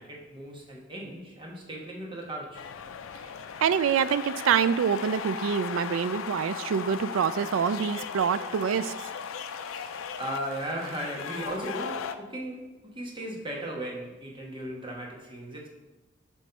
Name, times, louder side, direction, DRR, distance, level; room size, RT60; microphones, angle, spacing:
voice 1, 0.0-2.7 9.6-15.7, right 1 dB, 25° right, -1 dB, 1.2 m, -37 dB
sound 1, 2.5-12.1, left 7 dB, 85° left, 0.4 m, -37 dB
voice 2, 3.6-8.9, right 7 dB, 85° right, 15 dB, 0.3 m, -26 dB
7.7 x 3.1 x 5.6 m, 1.1 s
head